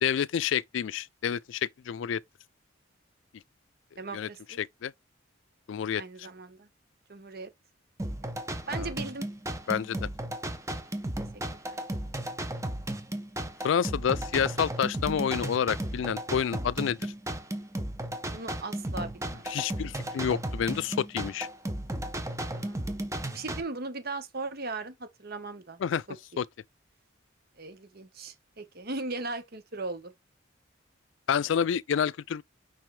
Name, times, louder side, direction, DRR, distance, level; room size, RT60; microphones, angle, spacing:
voice 1, 0.0-2.2 4.1-4.3 4.6-4.9 5.7-6.3 8.7-8.9 9.7-10.1 13.6-17.1 19.5-21.5 25.8-26.0 26.4-26.5 31.3-32.4, left 8 dB, 70° left, 0.4 m, -29 dB
voice 2, 4.0-4.6 6.0-6.7 7.1-7.5 8.2-8.3 8.7-9.3 11.7-11.8 18.3-19.5 22.4-23.0 23.3-25.8 27.6-30.1, right 3 dB, 50° right, 1.2 m, -38 dB
sound 1, 8.0-23.6, right 1 dB, 15° right, 1.0 m, -35 dB
6.0 x 5.4 x 3.3 m
head